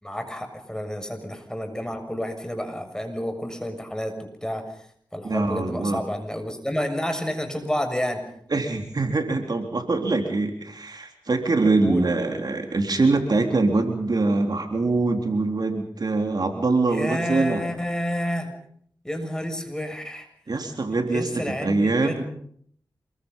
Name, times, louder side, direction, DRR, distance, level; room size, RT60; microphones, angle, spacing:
voice 1, 0.0-4.7 5.1-8.3 11.8-12.1 16.9-18.5 19.0-20.3 21.1-22.2, equal, 10° left, 6 dB, 7.1 m, -30 dB
voice 2, 5.2-6.0 8.5-17.6 20.5-21.3 21.6-22.2, right 3 dB, 60° right, 4 dB, 3.8 m, -23 dB
27.5 x 23.0 x 5.6 m, 0.64 s
cardioid pair, 40°, 8 cm